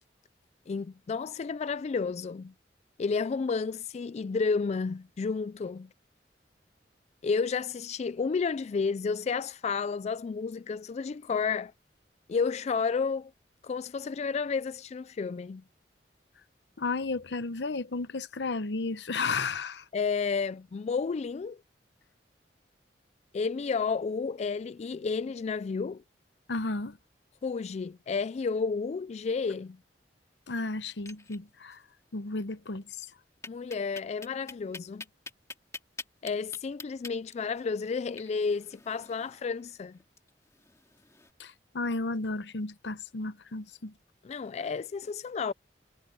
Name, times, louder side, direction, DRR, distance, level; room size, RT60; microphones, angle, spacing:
voice 1, 0.7-2.5 3.0-5.9 7.2-11.7 12.3-13.3 13.6-15.6 19.9-21.6 23.3-26.0 27.4-29.8 33.5-35.0 36.2-40.0 44.2-45.5, left 5 dB, 40° left, 0.3 m, -31 dB
voice 2, 16.8-19.8 26.5-27.0 30.5-31.8 32.1-33.1 41.4-43.9, left 3 dB, 75° left, 0.8 m, -33 dB
sound 1, 30.9-31.8 32.1-32.2 32.5-32.6 33.4-41.3, left 3 dB, 20° left, 2.2 m, -46 dB
head